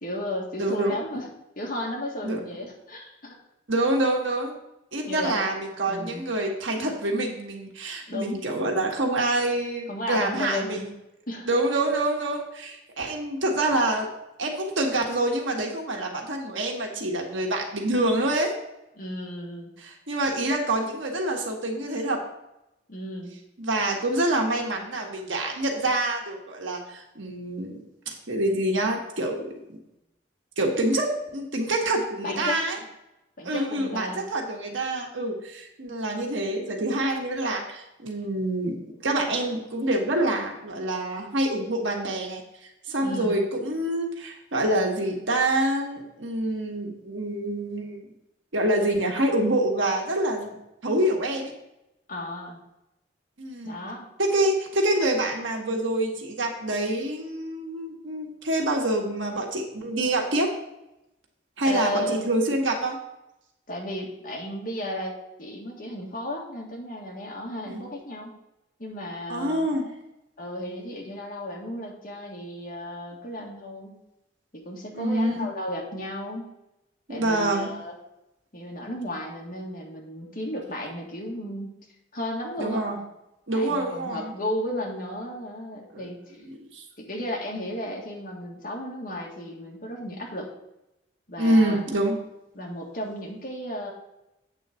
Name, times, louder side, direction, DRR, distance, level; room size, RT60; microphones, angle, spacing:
voice 1, 0.0-1.3 1.5-3.4 5.0-5.4 5.9-6.2 8.1-8.4 9.9-10.8 11.3-11.5 18.9-19.7 22.9-23.3 32.2-32.6 33.4-34.2 43.0-43.4 52.1-52.6 53.6-54.1 61.6-62.3 63.7-68.3 68.8-69.7 70.4-73.9 74.5-76.5 77.1-77.9 78.5-81.8 82.1-82.9 83.5-86.4 87.0-90.5 91.3-91.8 92.5-93.9, left 1 dB, 45° left, -1 dB, 1.7 m, -34 dB
voice 2, 0.6-0.9 2.2-2.4 3.7-4.6 4.9-10.9 11.4-14.1 14.4-18.5 19.8-22.2 23.6-27.7 28.1-29.4 30.6-32.8 33.4-38.8 39.0-42.4 42.9-48.1 48.5-50.6 50.8-51.5 53.4-53.8 54.2-60.5 61.6-63.0 67.6-67.8 69.3-69.8 74.9-75.5 77.1-77.7 82.6-83.0 83.5-84.3 85.9-86.1 86.6-86.8 91.4-92.2, right 1 dB, 80° right, 1 dB, 1.4 m, -26 dB
8.2 x 3.9 x 6.8 m, 0.88 s
head